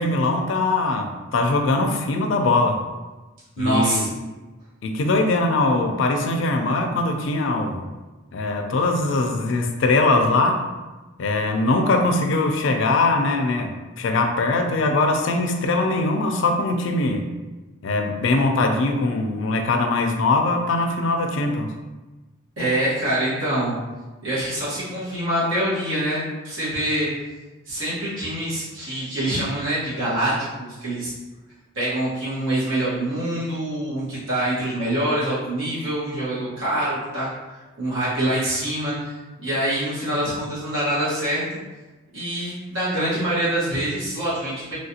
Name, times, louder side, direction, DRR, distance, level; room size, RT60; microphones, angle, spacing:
voice 1, 0.0-2.8 3.6-4.1 4.8-7.8 8.3-10.6 11.2-17.3 17.8-21.7, left 2 dB, 60° left, 4 dB, 0.4 m, -21 dB
voice 2, 3.6-4.1 22.6-23.8 24.2-27.1 27.6-31.1 31.7-37.3 37.8-41.4 42.1-44.7, right 1 dB, 70° right, -11 dB, 1.3 m, -25 dB
3.2 x 2.4 x 2.7 m, 1.2 s
head